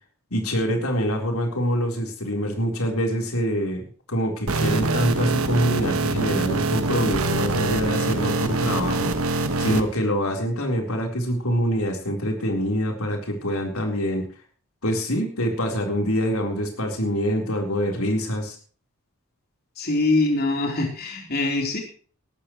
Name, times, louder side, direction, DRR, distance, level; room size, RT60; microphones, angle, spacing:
voice 1, 0.3-3.8 4.1-9.1 9.6-14.3 14.8-18.6, equal, 90° left, 2 dB, 4.1 m, -25 dB
sound 1, 4.5-9.8, right 3 dB, 85° right, 1.5 m, -24 dB
voice 2, 19.8-21.8, left 2 dB, 45° left, 1 dB, 3.6 m, -23 dB
20.0 x 13.5 x 3.1 m, 0.42 s
head